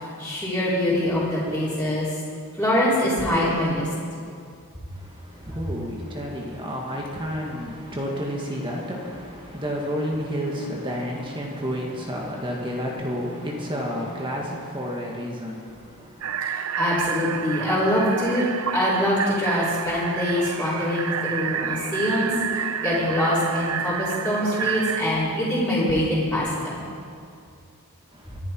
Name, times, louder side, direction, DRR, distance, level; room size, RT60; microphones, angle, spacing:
voice 1, 0.2-2.1 2.6-3.9 5.5-5.6 16.8-18.5 18.7-26.8, left 1 dB, 5° left, -12 dB, 4.2 m, -24 dB
voice 2, 5.4-15.6, equal, 20° right, -2 dB, 1.8 m, -30 dB
sound 1, 16.2-25.0, right 8 dB, 65° right, 0.6 m, -29 dB
24.5 x 11.0 x 4.6 m, 2.4 s
head